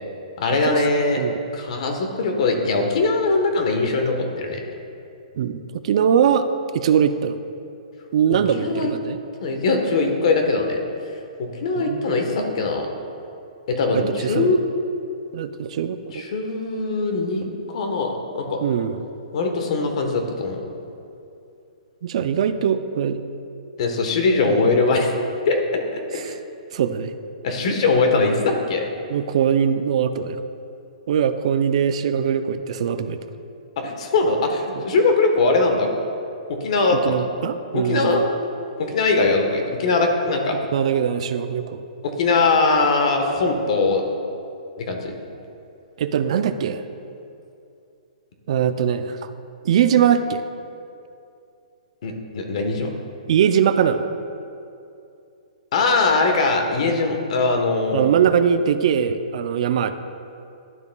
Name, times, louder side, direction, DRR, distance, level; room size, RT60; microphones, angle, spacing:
voice 1, 0.4-1.2 1.5-4.6 8.3-8.9 9.4-10.8 11.4-12.9 13.7-14.6 16.1-18.6 19.3-20.6 23.8-25.1 25.4-26.4 27.4-28.8 33.8-35.9 36.5-37.2 37.7-38.4 38.8-40.6 42.0-44.0 44.8-45.1 52.0-52.9 55.7-58.0, left 3 dB, 60° left, 4 dB, 1.1 m, -21 dB
voice 2, 5.4-6.5 6.7-7.4 8.1-9.2 11.8-12.2 13.9-14.5 15.3-16.2 18.6-19.0 22.0-23.2 24.5-24.7 26.1-26.3 26.7-27.1 29.1-30.4 31.1-33.2 34.8-34.9 36.9-38.3 40.7-41.8 46.0-46.8 48.5-49.3 49.6-50.4 53.3-54.1 57.9-59.9, right 8 dB, 60° right, 11 dB, 0.4 m, -21 dB
12.0 x 6.9 x 2.3 m, 2.6 s
hypercardioid pair, 150°, 4 cm